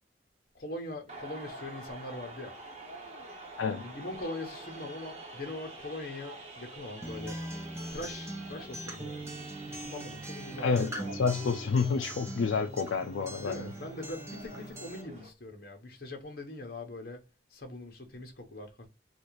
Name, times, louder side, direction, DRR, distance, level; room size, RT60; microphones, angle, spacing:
voice 1, 0.5-2.5 3.7-7.4 7.9-9.4 9.6-11.4 11.6-11.8 13.4-17.2 17.5-18.9, left 2 dB, 50° left, 1.1 m, -42 dB
sound 1, 1.1-15.3, right 2 dB, 35° right, 1.1 m, -47 dB
Acoustic guitar, 7.0-15.0, right 1 dB, 15° right, 0.7 m, -41 dB
voice 2, 10.6-13.7, left 5 dB, 85° left, 0.4 m, -29 dB
4.1 x 2.5 x 3.1 m
head